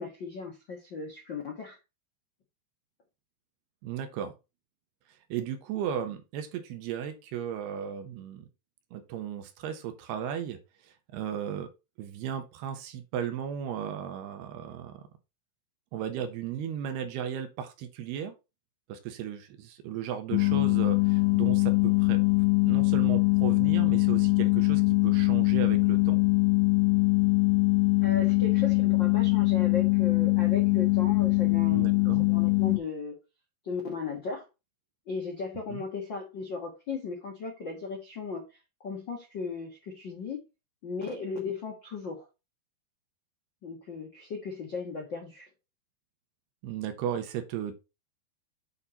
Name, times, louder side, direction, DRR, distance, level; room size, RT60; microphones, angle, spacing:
voice 1, 0.0-1.8 28.0-33.1 33.6-34.4 35.1-38.4 38.8-40.4 40.8-42.2 43.6-45.5, left 4 dB, 65° left, 1.1 m, -36 dB
voice 2, 3.8-4.3 5.3-8.5 8.9-10.6 10.8-11.7 12.0-15.0 15.9-18.4 18.9-22.2 22.7-26.2 31.7-32.3 35.7-35.8 46.6-47.7, right 9 dB, 80° right, 3.1 m, -35 dB
sound 1, 20.3-32.8, left 23 dB, 80° left, 2.3 m, -23 dB
8.5 x 4.3 x 4.3 m
omnidirectional pair, 4.6 m